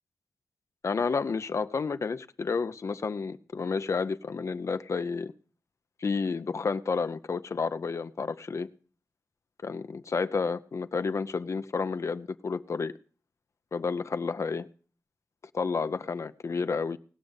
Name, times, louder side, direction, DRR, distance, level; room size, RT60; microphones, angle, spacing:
voice 1, 0.8-5.3 6.0-8.7 9.6-12.9 13.7-14.7 15.5-17.0, left 4 dB, 60° left, 0.6 m, -30 dB
19.0 x 6.4 x 8.0 m
wide cardioid pair, 70°, 6 cm